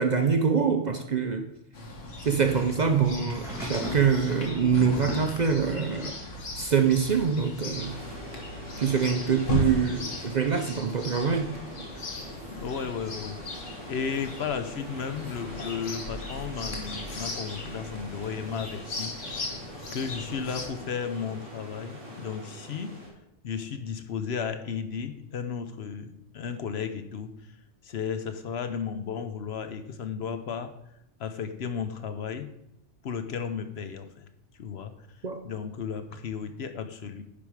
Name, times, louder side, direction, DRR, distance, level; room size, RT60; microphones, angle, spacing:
voice 1, 0.0-1.4 2.2-6.1 6.6-7.9 8.8-11.4 35.2-35.4, right 6 dB, 45° right, 6 dB, 0.6 m, -24 dB
Chirp tweet, 1.7-20.7, left 2 dB, 85° left, 1.8 m, -37 dB
sound 1, 3.3-6.3 6.8-8.0 9.0-9.1, equal, ahead, 2.2 m, -39 dB
sound 2, 7.7-23.1, equal, 25° right, 3.0 m, -43 dB
voice 2, 12.5-13.4 13.9-19.1 19.9-22.9 23.4-27.3 27.8-30.7 31.2-32.5 33.0-34.3 34.6-34.9 35.4-37.2, left 6 dB, 65° left, 9 dB, 0.9 m, -34 dB
10.0 x 5.2 x 4.8 m, 0.81 s
omnidirectional pair, 1.2 m